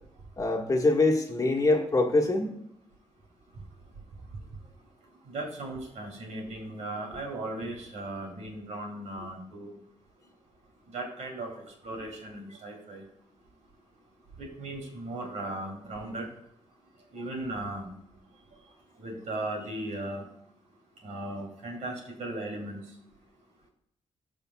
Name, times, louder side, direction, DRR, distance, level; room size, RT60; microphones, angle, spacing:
voice 1, 0.4-2.5, left 2 dB, 30° left, 2 dB, 1.5 m, -24 dB
voice 2, 5.3-9.7 10.9-13.0 14.4-16.3 17.1-17.9 19.0-20.2 21.0-22.8, right 2 dB, 80° right, 0 dB, 2.8 m, -37 dB
14.0 x 5.2 x 2.3 m, 0.75 s
cardioid pair, 80°, 12 cm